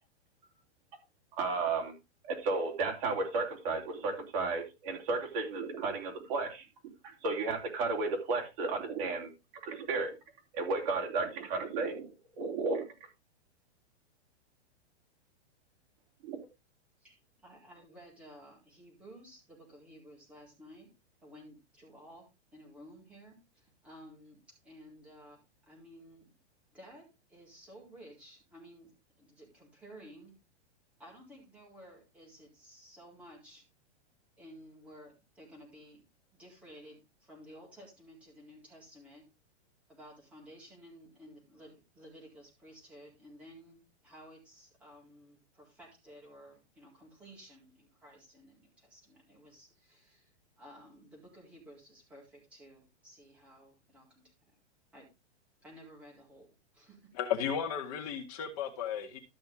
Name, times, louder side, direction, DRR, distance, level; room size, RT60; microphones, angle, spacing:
voice 1, 1.3-1.9 2.2-9.3 9.6-10.2 10.5-12.9 16.2-16.4, right 3 dB, 35° right, 3.5 m, -33 dB
voice 2, 17.0-20.9 21.2-26.3 26.7-28.9 29.2-30.4 31.0-33.6 34.4-36.0 36.3-39.3 39.9-54.6 54.9-55.1 55.6-57.1, equal, 5° right, 4.1 m, -54 dB
voice 3, 57.1-59.2, left 8 dB, 35° left, 2.0 m, -34 dB
13.5 x 6.3 x 3.6 m
hypercardioid pair, 170°, 34 cm